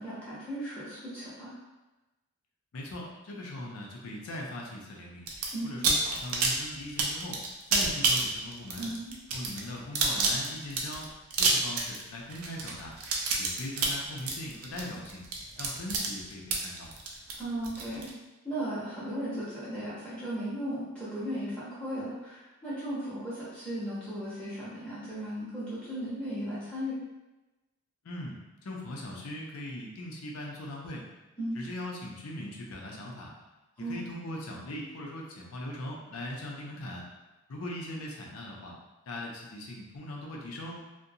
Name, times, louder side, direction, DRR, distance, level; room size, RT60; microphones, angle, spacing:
voice 1, 0.0-1.5 5.5-5.8 8.7-9.1 17.4-18.1 18.4-26.9 31.4-31.6 33.8-34.0, right 1 dB, 5° left, -11 dB, 0.8 m, -36 dB
voice 2, 2.7-5.3 5.6-7.4 7.7-8.9 9.3-11.1 11.4-12.9 13.4-15.2 15.6-16.9 28.0-31.0 31.6-33.3 33.8-37.0 37.5-38.7 39.1-40.8, left 1 dB, 85° left, -2 dB, 0.5 m, -40 dB
sound 1, 5.3-5.5 5.8-18.1, right 4 dB, 90° right, 0.5 m, -29 dB
2.5 x 2.1 x 2.7 m, 1.1 s
head